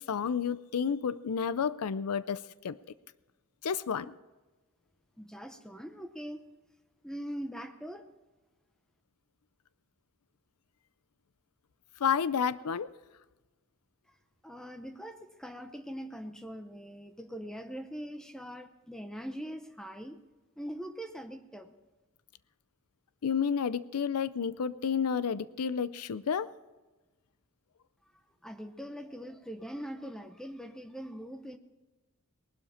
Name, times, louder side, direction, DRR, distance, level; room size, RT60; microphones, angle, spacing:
voice 1, 0.0-2.8 3.6-4.2 12.0-12.9 23.2-26.5, left 7 dB, 90° left, 16 dB, 0.5 m, -31 dB
voice 2, 5.2-6.5 7.0-8.0 14.4-20.2 20.6-21.7 28.4-31.6, equal, 5° left, 8 dB, 0.8 m, -42 dB
19.5 x 12.0 x 4.3 m, 1.2 s
head